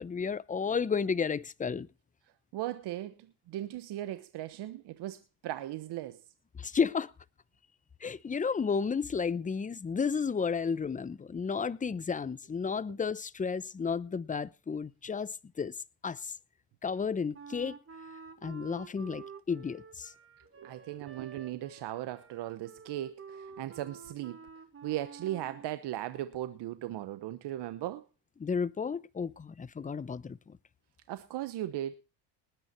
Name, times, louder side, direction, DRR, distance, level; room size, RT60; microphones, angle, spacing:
voice 1, 0.0-1.9 6.6-7.1 8.0-15.7 16.0-16.3 16.8-17.8 18.4-20.1 28.4-30.6, left 5 dB, 20° left, 0.8 m, -32 dB
voice 2, 2.5-6.2 20.6-24.4 24.8-28.0 31.1-32.0, right 13 dB, 65° right, 1.2 m, -37 dB
Wind instrument woodwind instrument, 17.3-25.8, right 6 dB, 30° right, 2.0 m, -50 dB
19.5 x 9.2 x 4.5 m
cardioid pair, 105°, 43 cm